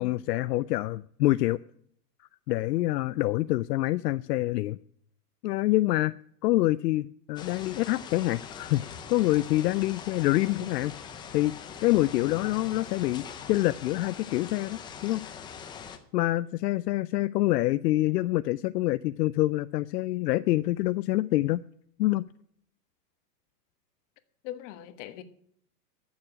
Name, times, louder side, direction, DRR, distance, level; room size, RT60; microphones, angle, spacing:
voice 1, 0.0-1.6 2.5-4.8 5.4-6.1 6.4-8.8 9.1-10.9 11.3-11.5 11.8-15.3 16.1-21.6 22.0-22.2, left 17 dB, 75° left, 0.6 m, -26 dB
sound 1, 7.4-16.0, left 7 dB, 10° left, 0.4 m, -42 dB
voice 2, 24.4-25.2, left 12 dB, 45° left, 1.4 m, -40 dB
11.0 x 7.3 x 9.6 m
supercardioid pair, 140°, 49 cm